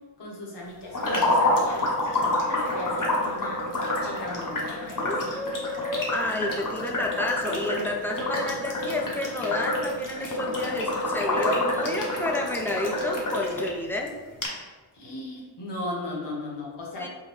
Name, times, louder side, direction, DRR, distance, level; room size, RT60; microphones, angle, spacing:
voice 1, 0.2-3.7 4.0-5.4 14.9-17.1, left 2 dB, 65° left, -3 dB, 1.3 m, -37 dB
sound 1, 0.9-13.7 14.1-14.2 14.4-14.5, left 1 dB, 45° left, 0.9 m, -27 dB
voice 2, 5.0-14.1 17.0-17.1, left 2 dB, 5° left, 0 dB, 0.4 m, -30 dB
5.1 x 2.2 x 3.1 m, 1.3 s
wide cardioid pair, 85°, 44 cm